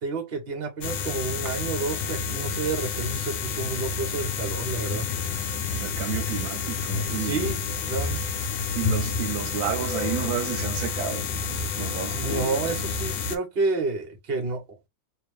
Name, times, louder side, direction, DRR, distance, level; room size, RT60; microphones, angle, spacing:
voice 1, 0.0-5.1 7.1-8.2 12.1-14.9, right 4 dB, 35° right, 1.2 m, -30 dB
sound 1, 0.8-13.4, left 5 dB, 80° left, 1.4 m, -29 dB
voice 2, 5.7-7.5 8.8-12.5, right 10 dB, 85° right, 1.4 m, -32 dB
3.0 x 2.9 x 3.3 m
omnidirectional pair, 2.1 m